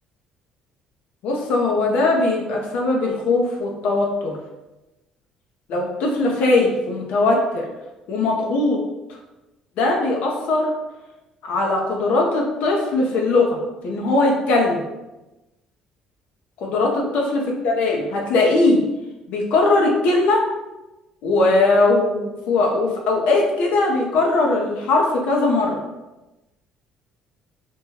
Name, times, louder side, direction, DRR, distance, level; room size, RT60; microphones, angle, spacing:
voice 1, 1.2-4.3 5.7-7.6 8.1-8.8 9.8-10.7 11.4-13.5 13.8-14.8 16.6-18.8 19.3-20.4 21.2-25.8, left 2 dB, 70° left, 0 dB, 0.5 m, -20 dB
2.8 x 2.2 x 3.0 m, 1.0 s
supercardioid pair, 70°, 2 cm